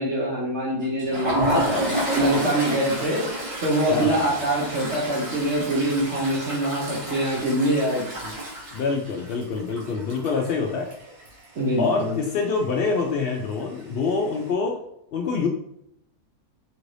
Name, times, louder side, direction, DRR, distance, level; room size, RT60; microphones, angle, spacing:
voice 1, 0.0-8.3 11.6-12.1, right 1 dB, 55° right, -5 dB, 1.1 m, -25 dB
Toilet flush, 0.8-11.6 11.9-12.1 12.4-12.6 13.5-14.0, right 1 dB, 90° right, 2.1 m, -30 dB
voice 2, 1.4-2.5 3.9-4.5 8.7-10.9 11.8-14.8 15.1-15.5, left 4 dB, 80° left, 2 dB, 0.5 m, -26 dB
5.3 x 2.6 x 3.2 m, 0.75 s
omnidirectional pair, 1.6 m